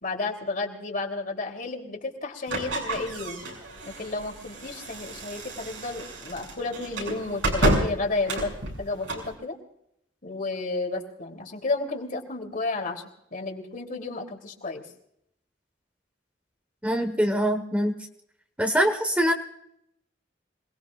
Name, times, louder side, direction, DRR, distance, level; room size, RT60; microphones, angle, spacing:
voice 1, 0.0-3.4 3.8-8.5 8.8-9.6 10.2-13.0 13.3-14.8, left 3 dB, 50° left, 3 dB, 3.4 m, -32 dB
sound 1, 2.5-9.3, right 1 dB, 85° right, 6.8 m, -30 dB
voice 2, 16.8-17.9 18.6-19.3, equal, 10° right, 5 dB, 1.4 m, -23 dB
27.5 x 20.0 x 2.5 m, 0.75 s
head